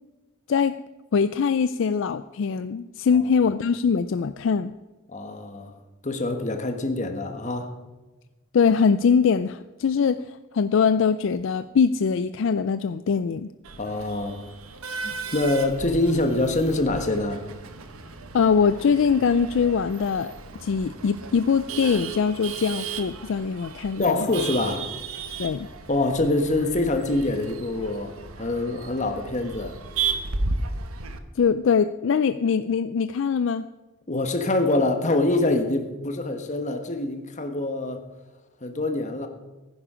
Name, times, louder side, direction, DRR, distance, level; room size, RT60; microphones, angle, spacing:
voice 1, 1.1-4.7 8.5-13.5 18.3-20.3 20.6-24.3 25.4-25.7 31.4-33.7, left 6 dB, 60° left, 0.4 m, -22 dB
voice 2, 5.1-7.7 13.8-14.5 15.0-17.5 24.0-24.9 25.9-29.8 34.1-38.0 38.6-39.3, left 2 dB, 35° left, 1.3 m, -25 dB
Male speech man speaking / Laughter / Chatter, 13.6-31.2, right 4 dB, 90° right, 1.1 m, -35 dB
15.5 x 9.8 x 5.0 m
head